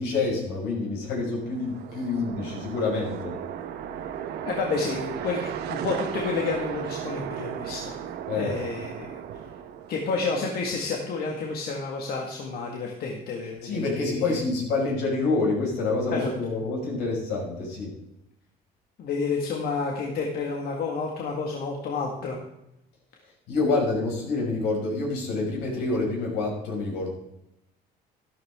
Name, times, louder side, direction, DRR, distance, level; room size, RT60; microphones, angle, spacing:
voice 1, 0.0-3.4 8.3-8.6 13.6-17.9 23.5-27.1, left 3 dB, 85° left, -2 dB, 5.8 m, -27 dB
sound 1, 1.3-10.3, right 9 dB, 75° right, 1.2 m, -35 dB
voice 2, 4.4-7.9 8.3-9.2 9.9-14.3 16.1-16.3 19.0-22.4, left 4 dB, 65° left, 0 dB, 2.0 m, -30 dB
13.0 x 12.0 x 3.7 m, 0.85 s
cardioid pair, 110°, 17 cm